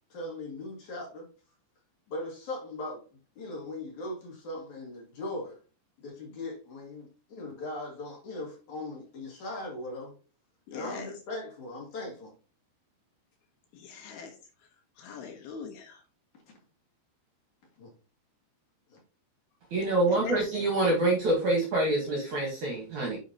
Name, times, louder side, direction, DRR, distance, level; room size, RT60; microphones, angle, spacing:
voice 1, 0.1-1.3 2.1-3.0 3.4-5.6 6.0-10.1 10.7-12.3 17.8-17.9 18.9-19.0, left 2 dB, 50° left, -2 dB, 3.0 m, -39 dB
voice 2, 10.7-11.1 13.7-14.4 15.0-16.0 20.1-20.4, left 5 dB, 70° left, 4 dB, 2.7 m, -41 dB
voice 3, 19.7-23.2, right 2 dB, 60° right, 0 dB, 2.2 m, -26 dB
9.8 x 5.2 x 2.9 m, 0.35 s
omnidirectional pair, 5.0 m